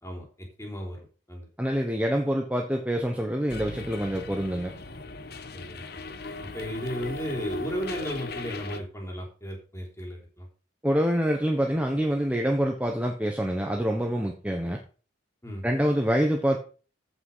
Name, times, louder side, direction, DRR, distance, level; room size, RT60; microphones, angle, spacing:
voice 1, 0.0-1.5 5.5-6.1 6.4-10.5 15.4-15.6, equal, 15° left, 0 dB, 4.0 m, -35 dB
voice 2, 1.6-4.7 10.8-14.8 15.6-16.6, equal, 5° right, 2 dB, 1.2 m, -26 dB
sound 1, 3.5-8.8, left 3 dB, 50° left, 1.1 m, -38 dB
15.0 x 5.9 x 5.7 m, 0.37 s
head